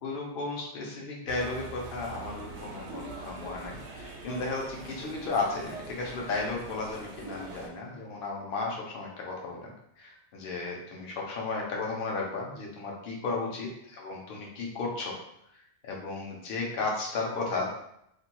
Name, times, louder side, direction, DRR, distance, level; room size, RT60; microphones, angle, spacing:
voice 1, 0.0-13.7 14.0-15.1 15.8-17.8, left 3 dB, 55° left, -1 dB, 0.8 m, -34 dB
sound 1, 1.3-7.7, right 3 dB, 75° right, 0.9 m, -42 dB
2.5 x 2.2 x 2.8 m, 0.75 s
omnidirectional pair, 1.2 m